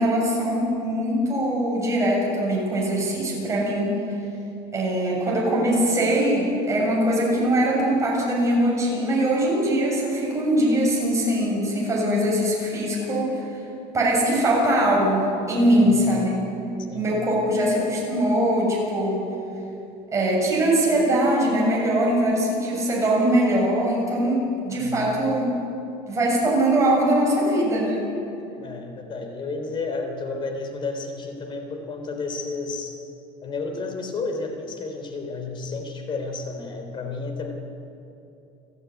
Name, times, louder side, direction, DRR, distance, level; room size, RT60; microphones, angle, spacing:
voice 1, 0.0-4.0 4.7-13.5 13.9-16.4 16.9-19.2 20.1-25.5 26.1-28.0, right 1 dB, 15° right, -3 dB, 7.4 m, -22 dB
voice 2, 24.7-25.1 28.6-33.0 33.4-37.5, left 3 dB, 30° left, 4 dB, 3.6 m, -32 dB
29.0 x 12.5 x 9.8 m, 2.7 s
cardioid pair, 160°, 17 cm